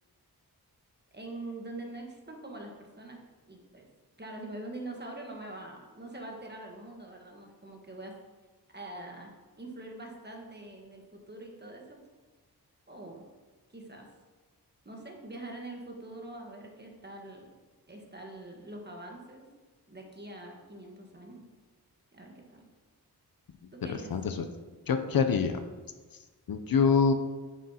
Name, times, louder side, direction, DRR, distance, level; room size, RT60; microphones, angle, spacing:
voice 1, 1.1-3.2 3.4-3.9 4.2-8.1 8.7-12.0 12.9-13.2 13.7-14.1 14.8-17.5 17.9-19.5 19.9-21.4 22.1-22.6 23.7-24.1, right 2 dB, 25° right, 1 dB, 1.3 m, -44 dB
voice 2, 23.9-24.5 24.9-25.6 26.5-27.1, left 5 dB, 60° left, 8 dB, 0.6 m, -25 dB
7.3 x 6.4 x 2.8 m, 1.3 s
cardioid pair, 60°, 40 cm